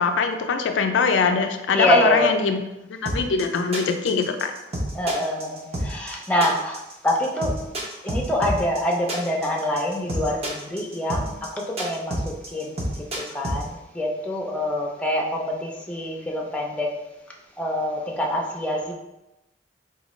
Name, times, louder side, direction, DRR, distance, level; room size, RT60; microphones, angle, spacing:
voice 1, 0.0-2.6 2.9-4.5, left 5 dB, 85° left, 6 dB, 0.3 m, -22 dB
voice 2, 1.7-2.3 4.9-7.6 8.0-12.8 13.1-16.9 17.6-18.9, left 1 dB, 5° left, -1 dB, 0.4 m, -25 dB
sound 1, 3.0-13.6, right 1 dB, 35° right, 0.6 m, -28 dB
3.9 x 2.2 x 3.0 m, 0.94 s
head